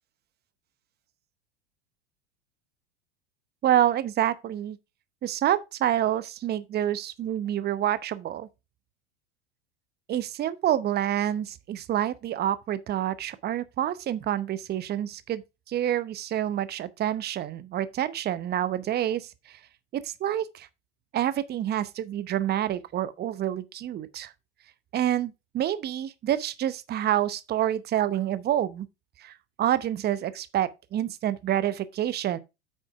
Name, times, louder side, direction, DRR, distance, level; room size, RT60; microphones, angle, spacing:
voice 1, 3.6-4.8 5.2-8.5 10.1-15.4 15.7-19.3 19.9-20.7 21.1-24.3 24.9-28.9 29.2-29.3 29.6-32.4, right 11 dB, 30° right, 0.8 m, -27 dB
9.0 x 6.2 x 3.5 m
hypercardioid pair, 90°, 35 cm